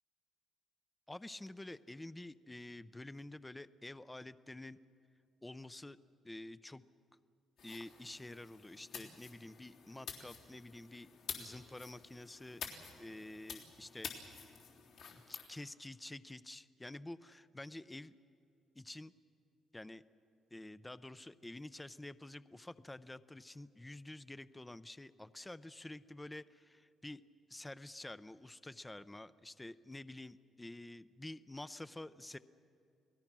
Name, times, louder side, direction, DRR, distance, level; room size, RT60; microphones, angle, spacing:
voice 1, 1.1-4.8 5.4-6.0 6.2-6.8 7.6-11.1 11.4-14.5 15.1-18.2 18.8-19.1 19.7-20.0 20.5-27.2 27.5-32.4, left 1 dB, 15° left, 15 dB, 0.5 m, -49 dB
sound 1, 7.6-15.5, left 6 dB, 75° left, 3.6 m, -49 dB
29.5 x 19.5 x 6.1 m, 2.5 s
cardioid pair, 90°, 0 cm